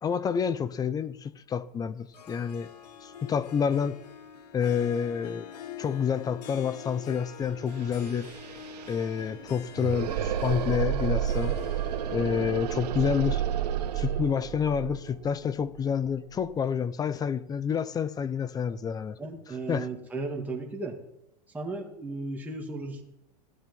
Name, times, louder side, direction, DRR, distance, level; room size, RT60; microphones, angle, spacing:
voice 1, 0.0-2.7 3.0-4.0 4.5-5.5 5.8-8.3 8.9-11.6 12.1-13.4 13.9-19.2 19.7-19.9, left 7 dB, 20° left, 0.7 m, -28 dB
Harp, 2.1-14.3, left 8 dB, 90° left, 2.1 m, -45 dB
sound 1, 7.4-7.5 7.7-16.5, right 10 dB, 80° right, 1.4 m, -31 dB
voice 2, 19.2-21.0 21.5-23.0, right 3 dB, 10° right, 2.3 m, -35 dB
17.0 x 12.5 x 5.5 m
supercardioid pair, 140°, 20 cm